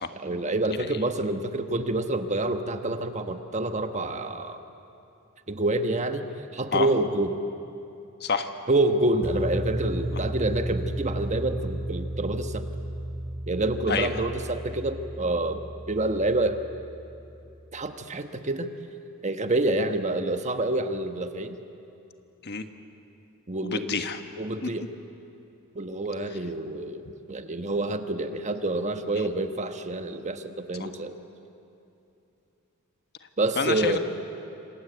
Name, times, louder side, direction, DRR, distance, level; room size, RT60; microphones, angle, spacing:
voice 1, 0.1-4.6 5.5-7.4 8.7-12.6 13.5-15.6 15.9-16.6 17.7-18.7 19.2-21.6 23.5-24.0 24.4-24.9 25.7-27.0 27.3-31.2 33.4-34.0, right 2 dB, 35° right, 8 dB, 1.3 m, -27 dB
voice 2, 8.2-8.5 13.9-14.1 22.4-22.7 23.6-24.2 24.6-24.7 29.1-29.2 30.8-30.9 33.6-34.0, left 5 dB, 50° left, 8 dB, 1.4 m, -28 dB
sound 1, 9.2-17.4, right 1 dB, 10° right, 2.0 m, -34 dB
28.0 x 26.5 x 8.1 m, 2.8 s
head